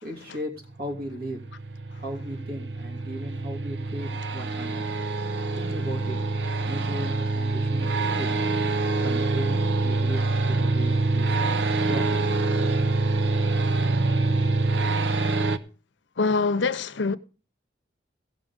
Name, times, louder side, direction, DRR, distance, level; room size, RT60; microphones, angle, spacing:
voice 1, 0.0-1.4 1.9-5.0 5.5-6.2 6.6-8.5 9.0-10.2 10.5-12.3, equal, 55° right, 3.1 m, -36 dB
sound 1, 0.8-15.6, right 3 dB, 75° right, 0.9 m, -25 dB
voice 2, 16.2-17.2, left 4 dB, 85° left, 0.8 m, -24 dB
16.0 x 6.3 x 5.2 m
head